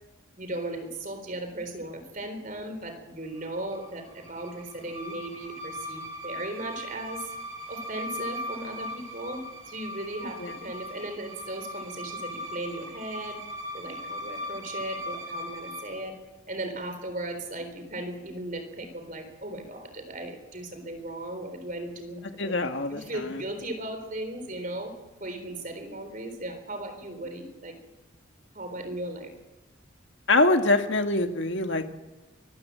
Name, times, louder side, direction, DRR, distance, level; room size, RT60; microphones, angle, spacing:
voice 1, 0.4-7.3 7.7-13.4 13.7-16.2 16.5-22.5 22.9-24.9 25.2-27.7 28.5-29.3, right 1 dB, 40° right, 7 dB, 3.9 m, -37 dB
sound 1, 3.3-16.0, left 1 dB, 75° right, 7.1 m, -39 dB
voice 2, 22.4-23.4 30.3-31.9, left 2 dB, 60° left, 6 dB, 1.8 m, -24 dB
24.0 x 15.0 x 7.7 m, 1.1 s
head